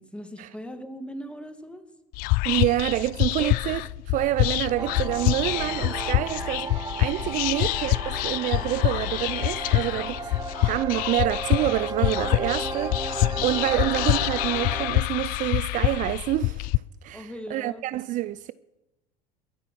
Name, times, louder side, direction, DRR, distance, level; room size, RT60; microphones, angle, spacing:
voice 1, 0.0-1.8 3.3-3.5 7.4-7.7 17.1-17.9, equal, 5° left, 2.1 m, -39 dB
Whispering, 2.1-16.8, left 21 dB, 50° left, 0.4 m, -26 dB
voice 2, 2.4-3.8 4.1-10.3 10.6-16.7 17.0-18.5, right 15 dB, 45° right, 0.5 m, -27 dB
sound 1, 4.8-14.9, right 3 dB, 20° right, 1.4 m, -34 dB
22.0 x 8.5 x 6.3 m
hypercardioid pair, 70°, 19 cm